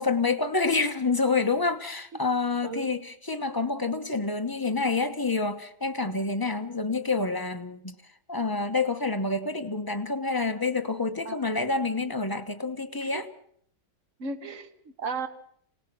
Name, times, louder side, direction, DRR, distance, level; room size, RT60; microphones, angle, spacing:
voice 1, 0.0-7.9 8.3-13.3, left 3 dB, 20° left, 8 dB, 0.6 m, -28 dB
voice 2, 14.2-15.3, right 4 dB, 45° right, 9 dB, 1.8 m, -35 dB
26.0 x 18.5 x 6.1 m, 0.65 s
omnidirectional pair, 2.0 m